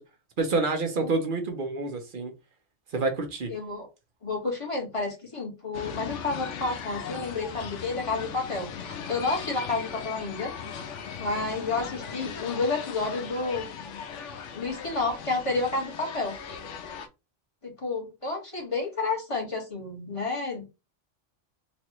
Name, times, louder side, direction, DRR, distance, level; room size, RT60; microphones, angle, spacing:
voice 1, 0.4-2.3 2.9-3.5, right 3 dB, 50° right, 0.8 m, -28 dB
voice 2, 3.5-3.9 4.2-10.5 11.2-13.7 14.5-16.4 17.6-20.7, left 3 dB, 25° left, 1.5 m, -30 dB
sound 1, 5.7-17.1, left 7 dB, 85° left, 1.0 m, -38 dB
4.0 x 2.5 x 3.0 m
omnidirectional pair, 1.2 m